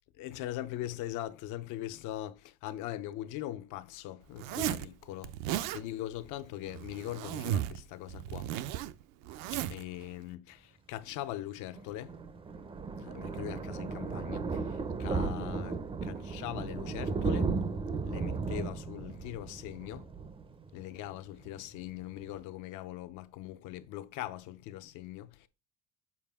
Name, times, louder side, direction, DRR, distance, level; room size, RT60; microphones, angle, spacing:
voice 1, 0.1-5.3 5.7-8.5 9.5-12.1 13.0-17.5 18.0-20.1 20.7-25.5, left 13 dB, 65° left, 0.7 m, -41 dB
Zipper (clothing), 4.4-4.9 5.2-5.8 6.7-7.8 8.1-9.8, right 12 dB, 75° right, 0.6 m, -35 dB
Thunder, 11.7-21.1 21.5-21.7 22.0-22.1 22.3-22.4, right 4 dB, 15° right, 0.5 m, -35 dB
7.3 x 4.8 x 3.5 m
cardioid pair, 150°, 33 cm